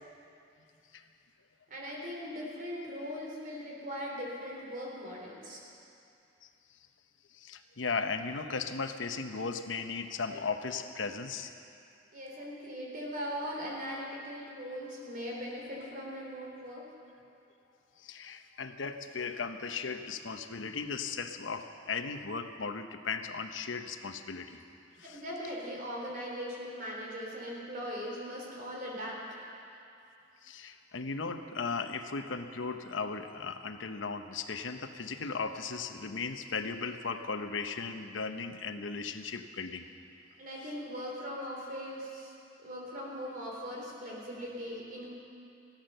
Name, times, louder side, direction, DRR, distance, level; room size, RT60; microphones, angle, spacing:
voice 1, 1.7-5.6 12.1-16.9 25.1-29.2 40.4-42.3 42.6-45.1, equal, 45° right, -2 dB, 3.6 m, -40 dB
voice 2, 7.3-11.5 18.0-24.6 25.0-25.2 30.4-39.8, left 4 dB, 85° left, 7 dB, 0.9 m, -37 dB
16.0 x 13.0 x 6.7 m, 2.6 s
head